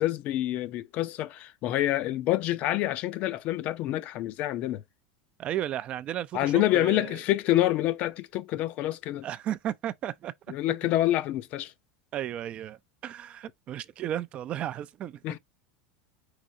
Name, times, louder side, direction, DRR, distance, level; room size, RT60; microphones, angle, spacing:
voice 1, 0.0-4.8 6.3-9.3 10.5-11.7 15.2-15.4, left 14 dB, 45° left, 0.5 m, -27 dB
voice 2, 5.4-7.2 9.2-10.3 12.1-15.4, right 11 dB, 35° right, 0.4 m, -34 dB
4.8 x 4.1 x 2.6 m
supercardioid pair, 135°, 3 cm